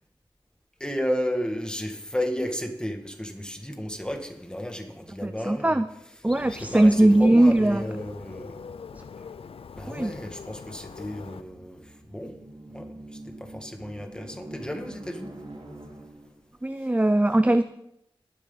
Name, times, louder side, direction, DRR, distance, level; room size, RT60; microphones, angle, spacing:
voice 1, 0.8-5.8 6.4-8.6 9.8-11.8 12.1-12.3 12.7-13.0 13.4-15.3, equal, 10° left, 3 dB, 2.1 m, -33 dB
voice 2, 5.2-5.9 6.2-7.8 8.9-9.0 9.9-10.1 16.6-17.6, right 1 dB, 15° right, 11 dB, 0.5 m, -20 dB
Bird, 6.3-11.4, left 6 dB, 90° left, 0.5 m, -42 dB
sound 1, 11.0-16.5, right 1 dB, 80° right, 3.8 m, -45 dB
21.0 x 7.7 x 4.1 m, 0.81 s
cardioid pair, 45°, 9 cm